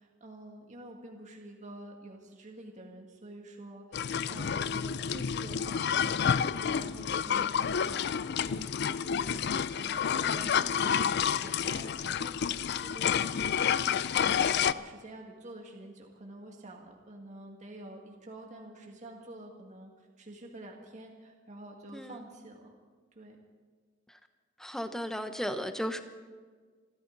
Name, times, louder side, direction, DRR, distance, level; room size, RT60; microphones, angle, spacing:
voice 1, 0.0-9.4 9.7-22.8 23.2-23.4, right 1 dB, 40° right, 1 dB, 2.0 m, -48 dB
sound 1, 3.9-14.7, left 7 dB, 60° left, 0.4 m, -29 dB
voice 2, 24.6-26.0, equal, ahead, 8 dB, 0.9 m, -35 dB
27.0 x 13.0 x 4.0 m, 1.5 s
head